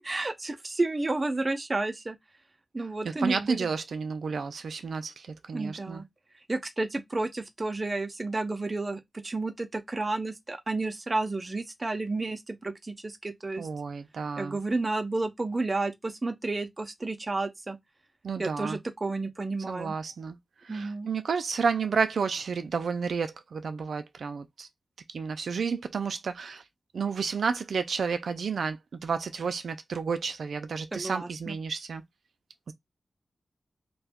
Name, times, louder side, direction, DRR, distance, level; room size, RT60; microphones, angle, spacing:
voice 1, 0.0-2.2 2.7-3.7 5.5-6.1 6.5-13.7 14.4-17.8 18.4-19.9 20.7-21.1 30.9-31.6, right 2 dB, 30° right, 0.6 m, -31 dB
voice 2, 3.0-6.0 13.6-14.6 18.2-18.8 19.7-20.4 20.6-24.7 25.1-26.6 26.9-32.0 32.7-32.8, right 5 dB, 90° right, 0.3 m, -31 dB
2.6 x 2.2 x 3.5 m
wide cardioid pair, 85°, 0 cm